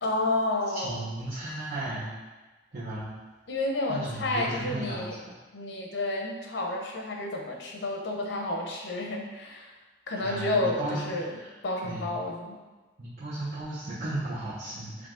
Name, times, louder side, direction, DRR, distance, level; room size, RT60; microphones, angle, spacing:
voice 1, 0.0-1.1 3.5-5.2 5.5-9.7 10.1-11.4 11.6-12.6, left 2 dB, 90° left, 0 dB, 0.8 m, -30 dB
voice 2, 0.7-2.1 2.7-3.1 3.9-5.1 10.2-11.5 11.8-12.2 13.0-15.1, right 1 dB, 55° right, -13 dB, 1.1 m, -35 dB
4.9 x 2.8 x 3.8 m, 1.2 s
head